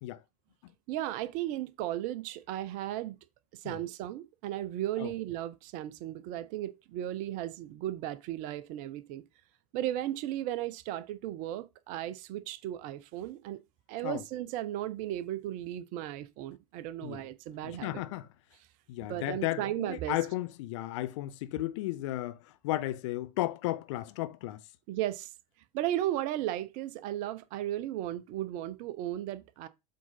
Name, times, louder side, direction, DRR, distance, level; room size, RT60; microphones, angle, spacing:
voice 1, 0.9-3.2 3.6-9.2 9.7-13.6 13.9-18.0 19.0-20.2 24.9-25.3 25.7-29.7, right 13 dB, 40° right, 0.9 m, -35 dB
voice 2, 17.6-18.3 18.9-22.4 22.6-24.6, left 16 dB, 50° left, 0.7 m, -34 dB
7.5 x 3.9 x 5.5 m
figure-of-eight pair, 85°, 20 cm